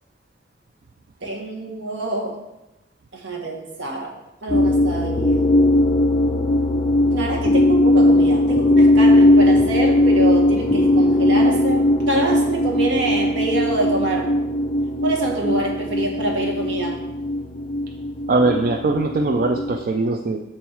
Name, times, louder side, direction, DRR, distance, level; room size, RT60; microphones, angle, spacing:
voice 1, 1.2-2.4 3.1-4.1 4.4-5.4 7.1-14.3 15.0-17.0, right 2 dB, 70° right, -1 dB, 1.3 m, -26 dB
sound 1, 4.5-19.8, left 1 dB, 25° left, 0.5 m, -18 dB
voice 2, 18.3-20.4, right 3 dB, 50° right, 4 dB, 0.4 m, -20 dB
7.1 x 4.2 x 4.5 m, 0.97 s
head